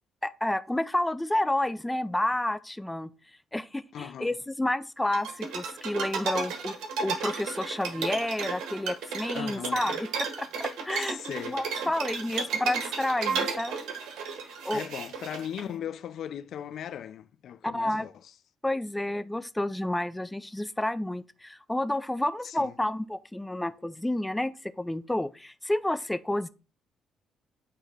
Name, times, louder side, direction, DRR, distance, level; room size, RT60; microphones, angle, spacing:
voice 1, 0.2-3.1 3.5-13.8 14.6-14.8 17.6-18.1 18.6-26.5, left 1 dB, 10° left, 0.4 m, -30 dB
voice 2, 3.9-4.3 9.3-9.9 10.9-11.9 14.7-18.1 22.4-22.7, left 9 dB, 70° left, 0.4 m, -38 dB
sound 1, 5.1-15.6, right 5 dB, 90° right, 1.3 m, -33 dB
8.4 x 2.9 x 5.1 m
cardioid pair, 100°, 0 cm